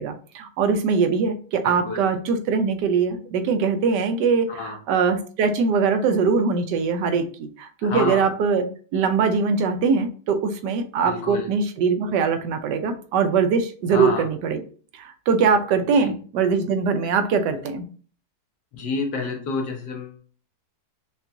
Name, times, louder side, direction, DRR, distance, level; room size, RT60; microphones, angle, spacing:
voice 1, 0.0-8.7 8.9-14.6 14.9-17.8, right 5 dB, 90° right, 8 dB, 1.2 m, -22 dB
voice 2, 1.6-2.0 4.6-4.8 7.8-8.2 11.0-11.5 13.9-14.3 16.0-16.1 18.7-20.2, left 4 dB, 80° left, 3 dB, 1.5 m, -29 dB
5.6 x 2.4 x 2.6 m, 0.41 s
omnidirectional pair, 1.8 m